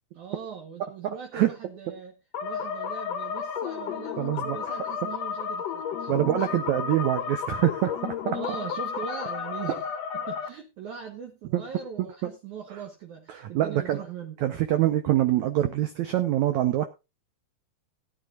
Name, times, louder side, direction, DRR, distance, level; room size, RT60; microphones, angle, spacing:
voice 1, 0.1-2.1 2.4-6.5 8.3-14.4, right 7 dB, 60° right, 3 dB, 2.4 m, -40 dB
voice 2, 1.0-1.5 4.2-4.6 6.1-8.4 11.5-11.6 12.0-12.3 13.3-14.0 14.4-16.9, right 13 dB, 80° right, 8 dB, 1.7 m, -25 dB
sound 1, 2.3-10.5, left 7 dB, 70° left, 1.6 m, -32 dB
18.0 x 9.5 x 2.5 m, 0.26 s
omnidirectional pair, 4.4 m